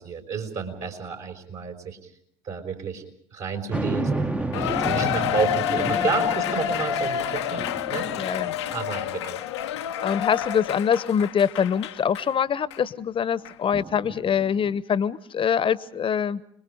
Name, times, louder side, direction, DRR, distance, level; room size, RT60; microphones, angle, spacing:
voice 1, 0.0-2.0 2.4-3.0 3.3-8.4 8.7-9.4, right 5 dB, 55° right, 3 dB, 5.2 m, -30 dB
sound 1, 3.7-9.2 9.8-9.9 13.7-14.8, right 2 dB, 10° right, 0.9 m, -32 dB
Cheering, 4.5-12.3 12.7-12.8 13.4-13.5, left 11 dB, 80° left, 0.8 m, -28 dB
voice 2, 7.9-8.5 10.0-16.4, left 7 dB, 40° left, 18 dB, 1.0 m, -24 dB
30.0 x 21.5 x 5.1 m, 0.70 s
figure-of-eight pair, 55°, 14 cm